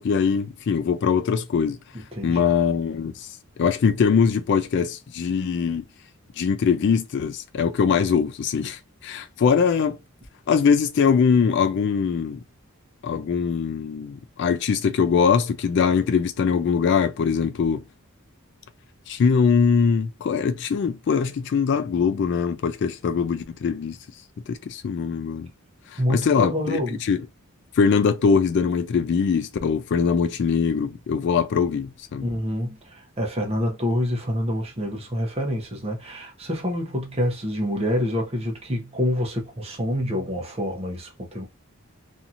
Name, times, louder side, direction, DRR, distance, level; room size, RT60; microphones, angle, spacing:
voice 1, 0.0-1.8 2.2-3.3 3.6-5.8 6.4-10.0 10.5-12.4 13.0-17.8 19.1-24.0 24.5-25.5 25.9-27.3 27.8-32.3, left 6 dB, 55° left, 0.3 m, -22 dB
voice 2, 2.2-2.5 26.0-27.0 32.2-32.8 33.2-41.4, equal, 30° right, 0.8 m, -27 dB
2.8 x 2.6 x 2.5 m
head